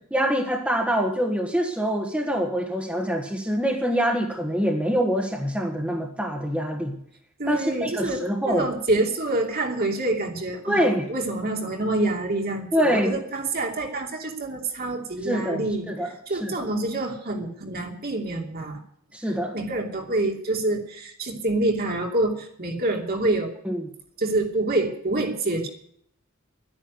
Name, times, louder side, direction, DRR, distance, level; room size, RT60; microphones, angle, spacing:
voice 1, 0.1-7.0 7.5-8.7 10.7-11.1 12.7-13.1 15.2-16.1 16.4-16.7 19.1-19.5 23.6-23.8, equal, 5° right, 1 dB, 1.7 m, -25 dB
voice 2, 7.4-10.8 11.1-15.9 16.3-18.8 19.5-23.5 24.2-25.7, right 2 dB, 50° right, 1 dB, 2.9 m, -26 dB
12.0 x 10.5 x 9.6 m, 0.67 s
head